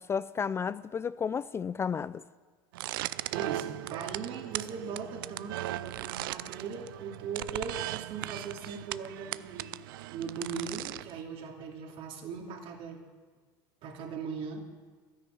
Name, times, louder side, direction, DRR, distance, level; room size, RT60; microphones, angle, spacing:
voice 1, 0.0-2.2, left 6 dB, 20° left, 17 dB, 0.3 m, -32 dB
sound 1, 2.7-11.2, right 15 dB, 70° right, 0.4 m, -38 dB
voice 2, 3.3-9.7 10.1-13.0 13.8-14.8, right 5 dB, 50° right, 2 dB, 2.8 m, -39 dB
13.0 x 10.5 x 7.8 m, 1.4 s
hypercardioid pair, 90°, 12 cm